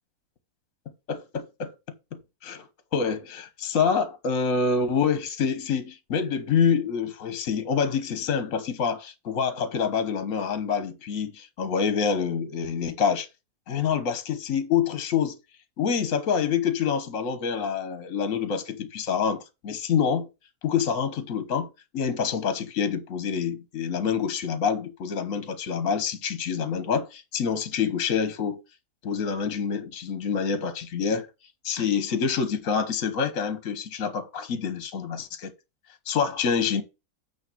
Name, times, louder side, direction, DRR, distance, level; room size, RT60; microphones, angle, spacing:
voice 1, 1.1-1.7 2.1-2.7 2.9-13.3 13.7-15.4 15.8-20.3 20.6-28.6 29.0-31.3 31.6-35.5 36.1-36.8, left 6 dB, 60° left, 1.4 m, -26 dB
8.7 x 3.3 x 6.1 m
omnidirectional pair, 1.6 m